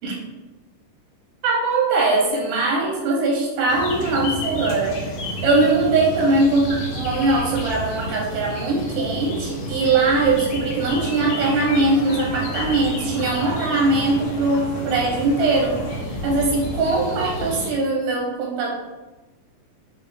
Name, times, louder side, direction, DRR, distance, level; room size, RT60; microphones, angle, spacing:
voice 1, 1.4-5.0 5.4-18.7, right 3 dB, 85° right, -1 dB, 2.2 m, -21 dB
sound 1, 3.7-17.7, equal, 70° left, 2.2 m, -30 dB
sound 2, 10.8-16.0, left 2 dB, 85° left, 2.3 m, -37 dB
6.1 x 2.4 x 2.3 m, 1.1 s
omnidirectional pair, 3.8 m